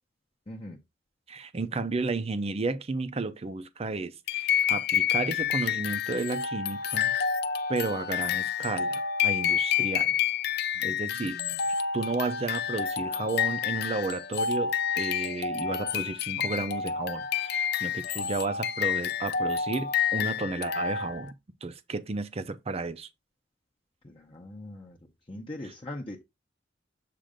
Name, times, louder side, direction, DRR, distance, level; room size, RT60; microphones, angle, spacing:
voice 1, 0.5-0.8 10.8-10.9 11.1-11.6 24.0-25.0 25.3-26.2, left 1 dB, 30° left, 0.8 m, -41 dB
voice 2, 1.3-7.1 7.7-10.2 10.8-11.4 11.9-21.3 21.6-23.1, right 3 dB, 35° right, 0.6 m, -33 dB
sound 1, 4.3-21.3, left 8 dB, 60° left, 0.5 m, -29 dB
7.5 x 2.6 x 5.0 m
head